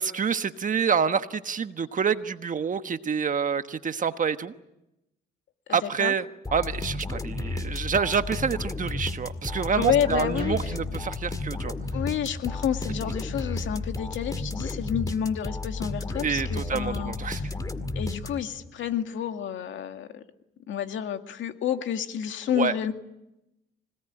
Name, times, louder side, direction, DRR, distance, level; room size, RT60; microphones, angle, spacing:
voice 1, 0.0-4.5 5.7-6.2 6.5-11.7 16.2-17.4 22.5-22.7, right 6 dB, 40° right, 10 dB, 1.3 m, -27 dB
voice 2, 5.7-6.1 9.8-10.7 11.9-17.5 18.0-20.2 20.7-22.9, left 9 dB, 75° left, 7 dB, 2.0 m, -29 dB
sound 1, 6.4-18.7, left 2 dB, 20° left, 2.1 m, -33 dB
Guitar, 10.4-11.5, left 8 dB, 50° left, 4.3 m, -46 dB
26.0 x 18.5 x 10.0 m, 0.91 s
cardioid pair, 90°, 20 cm